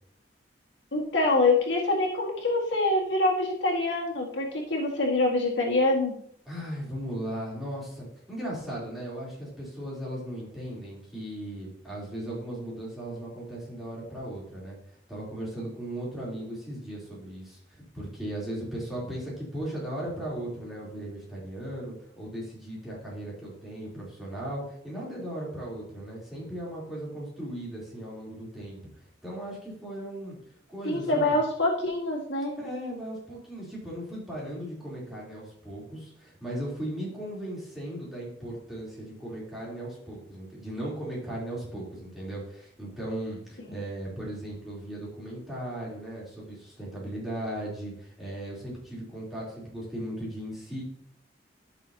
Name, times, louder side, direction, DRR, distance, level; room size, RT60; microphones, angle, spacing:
voice 1, 0.9-6.2 30.8-32.5, left 2 dB, 85° left, -1 dB, 1.9 m, -25 dB
voice 2, 6.4-14.8 15.1-28.8 29.2-30.4 30.7-31.4 32.6-50.8, right 1 dB, ahead, -7 dB, 3.4 m, -37 dB
12.5 x 6.3 x 2.8 m, 0.66 s
head